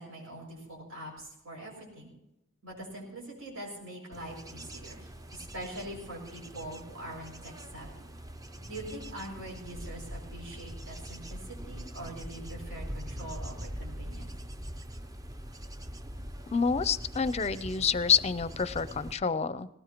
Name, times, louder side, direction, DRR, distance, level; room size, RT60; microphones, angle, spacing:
voice 1, 0.0-2.1 2.6-8.0 8.7-14.3, right 1 dB, 85° right, -4 dB, 6.3 m, -43 dB
Bird / Insect / Wind, 4.1-19.1, equal, 15° right, 0.5 m, -43 dB
voice 2, 16.5-19.7, left 6 dB, 30° left, 15 dB, 0.5 m, -28 dB
19.0 x 18.0 x 3.0 m, 0.87 s
head